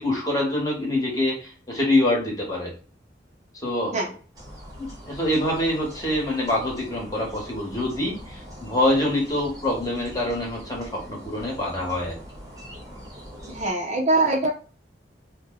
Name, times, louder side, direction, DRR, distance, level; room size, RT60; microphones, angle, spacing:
voice 1, 0.0-2.7 3.6-3.9 4.8-12.2, left 1 dB, 20° left, -3 dB, 1.1 m, -25 dB
sound 1, 4.3-13.7, equal, 20° right, 0.9 m, -43 dB
voice 2, 13.5-14.5, right 2 dB, 40° right, 1 dB, 0.5 m, -22 dB
2.7 x 2.1 x 3.7 m, 0.38 s
head